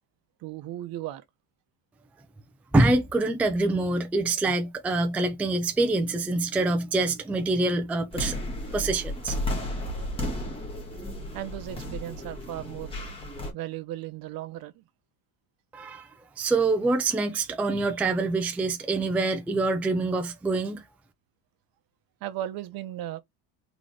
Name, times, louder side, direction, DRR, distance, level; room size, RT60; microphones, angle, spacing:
voice 1, 0.4-1.2 11.3-13.0 13.5-14.8 22.2-23.2, right 13 dB, 60° right, 0.8 m, -36 dB
voice 2, 2.7-8.4 8.7-9.4 15.7-16.1 16.4-20.8, right 2 dB, 5° right, 0.4 m, -25 dB
sound 1, 8.1-13.5, left 1 dB, 15° left, 1.3 m, -33 dB
3.9 x 3.0 x 3.4 m
cardioid pair, 155°, 40 cm